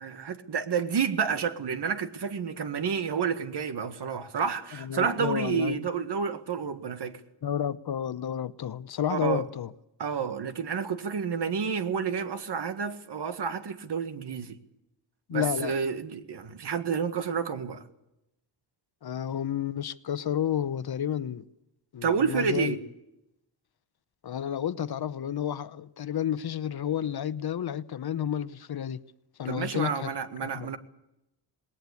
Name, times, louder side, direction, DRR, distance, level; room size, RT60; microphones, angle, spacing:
voice 1, 0.0-7.2 9.1-9.4 10.0-14.6 15.3-17.8 22.0-22.8 29.5-30.8, right 6 dB, 65° right, 1.9 m, -30 dB
voice 2, 4.8-5.9 7.4-9.7 15.3-15.7 19.0-21.4 21.9-22.8 24.2-29.0 29.4-30.1 30.5-30.7, left 9 dB, 60° left, 0.9 m, -31 dB
20.0 x 19.0 x 8.4 m
cardioid pair, 95°, 43 cm